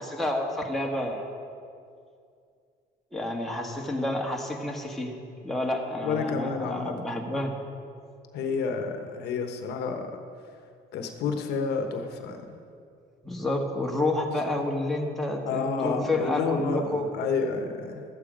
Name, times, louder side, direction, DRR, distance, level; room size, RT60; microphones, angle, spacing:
voice 1, 0.0-1.3 3.1-5.2 5.4-7.5 13.2-17.1, left 1 dB, ahead, -1 dB, 1.6 m, -29 dB
voice 2, 6.0-6.9 8.3-10.1 10.9-12.6 15.4-18.0, left 5 dB, 75° left, 5 dB, 1.1 m, -30 dB
13.0 x 8.8 x 5.1 m, 2.3 s
cardioid pair, 110°, 17 cm